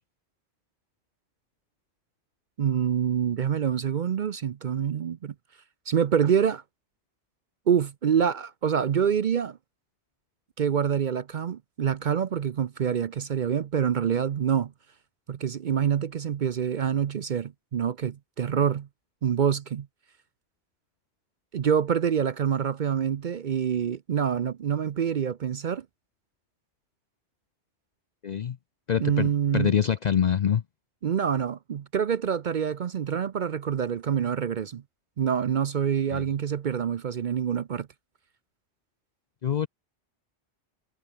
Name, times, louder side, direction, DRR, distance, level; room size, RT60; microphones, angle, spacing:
voice 1, 2.6-5.3 5.9-6.6 7.7-9.6 10.6-14.7 15.3-18.9 19.2-19.9 21.5-25.8 29.0-29.7 31.0-34.8 35.2-37.9, right 8 dB, 50° right, 0.6 m, -26 dB
voice 2, 28.2-28.6 28.9-30.6 36.1-36.2 39.4-39.7, left 8 dB, 55° left, 0.5 m, -25 dB
omnidirectional pair, 1.2 m